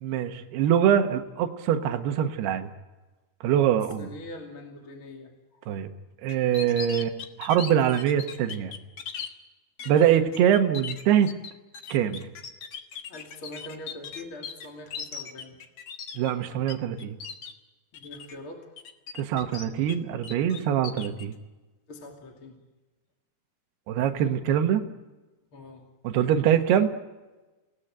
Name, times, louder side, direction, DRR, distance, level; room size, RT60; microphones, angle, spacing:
voice 1, 0.0-2.7 3.4-4.1 5.7-5.9 6.2-8.7 9.9-11.3 11.9-12.3 16.2-17.2 19.2-21.3 23.9-24.8 26.1-26.9, right 9 dB, 80° right, 6 dB, 3.3 m, -23 dB
voice 2, 3.7-5.6 10.1-10.4 13.1-15.6 17.9-18.7 21.9-22.6 25.5-25.9, left 1 dB, 35° left, 1 dB, 2.9 m, -43 dB
sound 1, 6.3-9.3 9.8-10.0 10.3-16.7 17.0-17.5 17.9-18.3 18.8-20.0 20.2-21.2, left 7 dB, 55° left, 1.6 m, -38 dB
28.0 x 19.0 x 8.9 m, 1.2 s
omnidirectional pair, 4.6 m